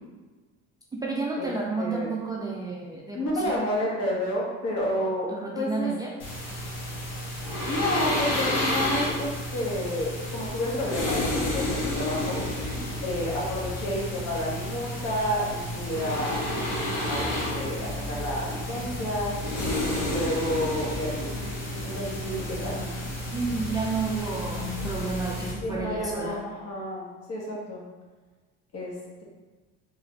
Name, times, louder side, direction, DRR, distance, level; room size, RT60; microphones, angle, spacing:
voice 1, 0.9-3.4 5.0-6.1 23.3-26.4, right 4 dB, 10° right, -3 dB, 0.4 m, -31 dB
voice 2, 1.8-2.1 3.1-5.3 5.5-5.9 7.7-12.4 13.0-16.5 17.1-19.4 19.9-21.4 21.8-22.9 25.6-27.8 28.7-29.2, left 1 dB, 50° left, -4 dB, 1.3 m, -30 dB
sound 1, 6.2-25.5, left 1 dB, 75° left, 1.3 m, -31 dB
sound 2, 11.0-26.2, left 1 dB, 20° left, 0.7 m, -40 dB
3.6 x 2.5 x 3.2 m, 1.3 s
supercardioid pair, 90°, 33 cm